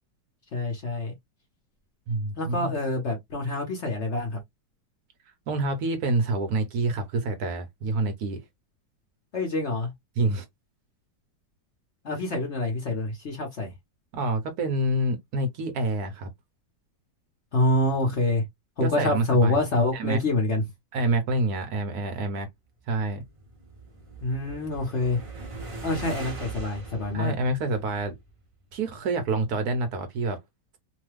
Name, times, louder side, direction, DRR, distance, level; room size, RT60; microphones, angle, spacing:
voice 1, 0.5-1.1 2.4-4.4 9.3-9.9 12.0-13.7 17.5-18.4 18.8-20.6 24.2-25.2 25.8-27.3, left 2 dB, 50° left, 1.0 m, -26 dB
voice 2, 2.1-2.7 5.5-8.4 10.2-10.4 14.1-16.3 18.8-19.6 19.9-20.2 20.9-22.5 22.9-23.2 27.1-28.2 28.7-30.4, right 2 dB, 65° right, 1.1 m, -27 dB
sound 1, 23.0-28.4, right 3 dB, 50° right, 0.4 m, -41 dB
3.0 x 2.2 x 3.2 m
omnidirectional pair, 1.9 m